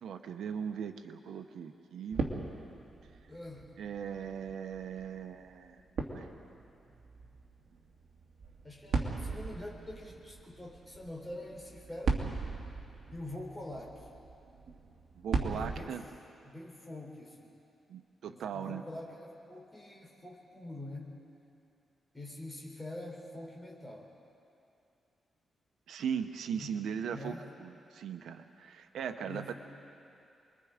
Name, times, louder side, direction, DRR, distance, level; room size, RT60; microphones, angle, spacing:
voice 1, 0.0-2.2 3.8-5.8 6.1-6.3 15.1-16.0 17.9-18.8 25.9-27.3 27.6-29.5, right 7 dB, 90° right, 7 dB, 1.0 m, -38 dB
sound 1, 2.1-15.8, right 4 dB, 60° right, 2.4 m, -39 dB
voice 2, 3.3-3.7 8.6-12.4 13.1-14.1 15.5-16.0 16.4-17.5 18.3-21.1 22.1-24.1 26.5-26.8 27.1-27.5 29.0-29.5, left 1 dB, 15° left, -1 dB, 3.9 m, -45 dB
29.0 x 22.0 x 5.1 m, 2.6 s
wide cardioid pair, 150°, 0 cm